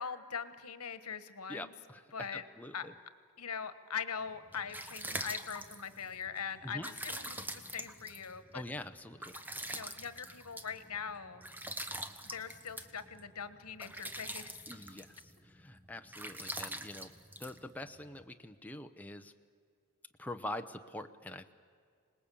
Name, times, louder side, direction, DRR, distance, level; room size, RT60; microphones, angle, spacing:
voice 1, 0.0-1.7 2.1-2.4 2.7-2.9 3.4-8.6 9.7-11.4 12.3-14.5, left 6 dB, 80° left, 12 dB, 1.4 m, -42 dB
voice 2, 1.5-2.9 6.6-6.9 8.5-9.4 14.7-17.1 17.4-19.3 20.2-21.5, left 1 dB, 5° left, 6 dB, 0.7 m, -45 dB
sound 1, 4.3-18.2, right 1 dB, 10° right, 1.1 m, -45 dB
26.5 x 19.5 x 8.5 m, 2.2 s
head